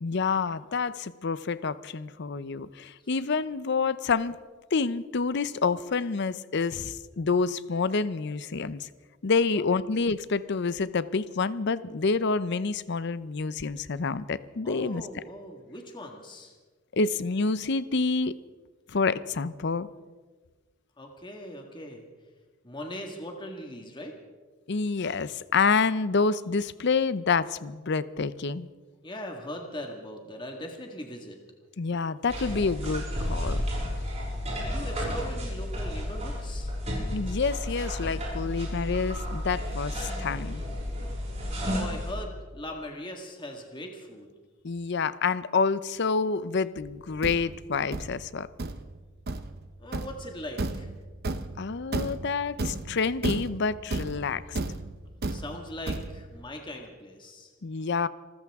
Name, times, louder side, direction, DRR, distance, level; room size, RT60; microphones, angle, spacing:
voice 1, 0.0-4.4 4.7-8.9 9.2-15.0 16.9-18.3 18.9-19.9 24.7-28.7 31.8-33.6 37.1-40.6 44.6-48.5 51.6-54.6 57.6-58.1, left 4 dB, 60° left, 16 dB, 0.6 m, -28 dB
voice 2, 14.6-16.5 21.0-22.1 22.6-24.1 29.0-31.4 34.6-36.7 41.7-44.3 49.8-50.9 55.3-57.5, left 1 dB, 25° left, 2 dB, 1.8 m, -40 dB
sound 1, 32.3-42.1, equal, 35° right, 6.6 m, -32 dB
Thump thud, 46.8-56.4, right 2 dB, 50° right, 0.8 m, -34 dB
27.0 x 14.5 x 3.6 m, 1.4 s
head